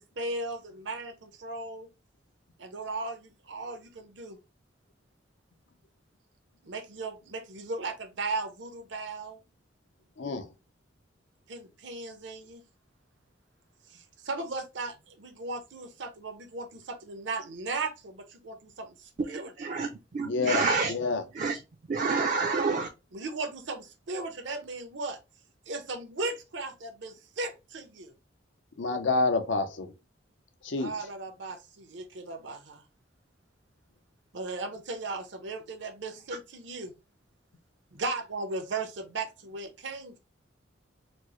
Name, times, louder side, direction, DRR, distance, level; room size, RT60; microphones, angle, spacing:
voice 1, 0.0-1.9 2.6-4.4 6.6-9.4 11.5-12.6 13.9-19.8 23.1-25.2 25.7-28.1 30.8-32.8 34.3-36.9 37.9-40.2, right 3 dB, 80° right, 0.7 m, -37 dB
voice 2, 10.2-10.5 20.2-21.2 28.8-29.9 30.6-30.9, left 3 dB, 85° left, 0.6 m, -28 dB
voice 3, 19.3-20.9 21.4-21.6 21.9-22.9, right 4 dB, 45° right, 0.4 m, -28 dB
4.3 x 2.0 x 3.0 m
head